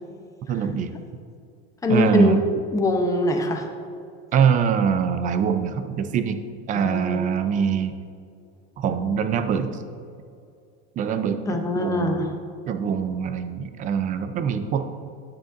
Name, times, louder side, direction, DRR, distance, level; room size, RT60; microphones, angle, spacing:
voice 1, 0.5-0.9 1.9-2.4 4.3-6.4 6.7-7.9 8.8-9.8 11.0-12.3 12.7-14.9, right 7 dB, 25° right, 9 dB, 0.4 m, -23 dB
voice 2, 1.8-3.7 6.8-7.2 11.5-12.3, left 1 dB, 10° left, 4 dB, 0.6 m, -23 dB
10.5 x 9.6 x 2.5 m, 2.4 s
supercardioid pair, 150°, 32 cm